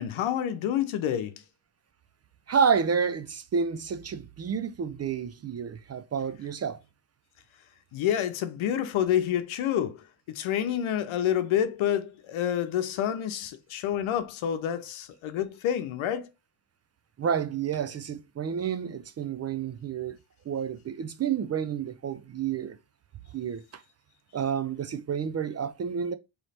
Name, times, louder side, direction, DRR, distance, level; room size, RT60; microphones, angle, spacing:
voice 1, 0.0-1.4 7.9-16.3, left 10 dB, 75° left, 0.8 m, -28 dB
voice 2, 2.5-6.8 17.2-20.2 20.5-22.8 23.3-23.6 24.3-26.2, right 7 dB, 35° right, 0.4 m, -29 dB
3.2 x 3.1 x 4.1 m
cardioid pair, 95°, 48 cm